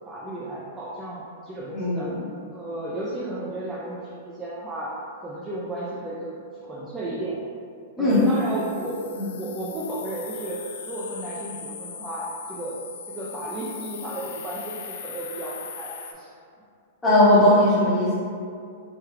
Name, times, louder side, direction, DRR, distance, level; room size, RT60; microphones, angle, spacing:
voice 1, 0.1-2.1 2.5-7.4 8.0-9.0 9.4-12.8 13.1-16.3, right 1 dB, 10° right, -7 dB, 0.3 m, -33 dB
voice 2, 1.7-2.3 8.0-8.2 9.2-9.3 17.0-18.1, left 1 dB, 5° left, -9 dB, 0.8 m, -18 dB
sound 1, 8.1-16.1, left 6 dB, 70° left, 0.3 m, -40 dB
3.3 x 2.2 x 3.1 m, 2.3 s
supercardioid pair, 165°, 0 cm